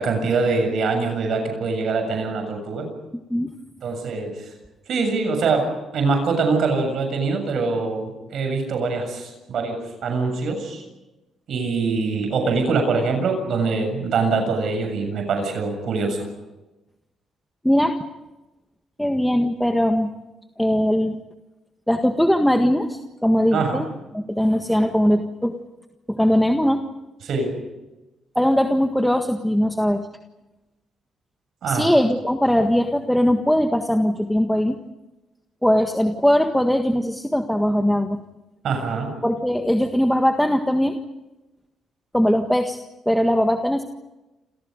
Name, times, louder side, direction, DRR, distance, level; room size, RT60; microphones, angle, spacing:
voice 1, 0.0-2.9 3.8-4.5 4.9-5.7 5.9-10.8 11.5-16.2 23.5-23.8 27.2-27.5 31.6-31.9 38.6-39.1, right 4 dB, 65° right, 5 dB, 7.2 m, -23 dB
voice 2, 17.6-17.9 19.0-20.1 20.6-21.2 21.9-23.8 24.1-25.6 26.1-26.8 28.3-30.0 31.7-34.8 35.6-38.2 39.2-41.0 42.1-42.8 43.0-43.8, equal, 5° left, 5 dB, 1.7 m, -20 dB
28.5 x 28.0 x 5.2 m, 1.0 s
cardioid pair, 90°, 0 cm